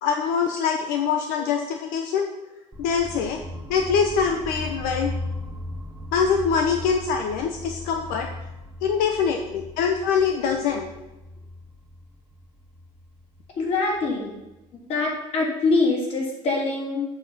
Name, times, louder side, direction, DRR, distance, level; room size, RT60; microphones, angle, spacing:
voice 1, 0.0-2.3 2.8-3.4 3.7-5.1 6.1-8.3 8.8-10.9, left 6 dB, 75° left, 4 dB, 0.9 m, -24 dB
sound 1, 2.7-14.7, left 1 dB, 10° right, 0.9 m, -38 dB
voice 2, 13.5-14.3 14.7-17.0, left 3 dB, 45° left, -2 dB, 3.1 m, -24 dB
8.0 x 7.3 x 5.9 m, 0.99 s
cardioid pair, 145°, 15 cm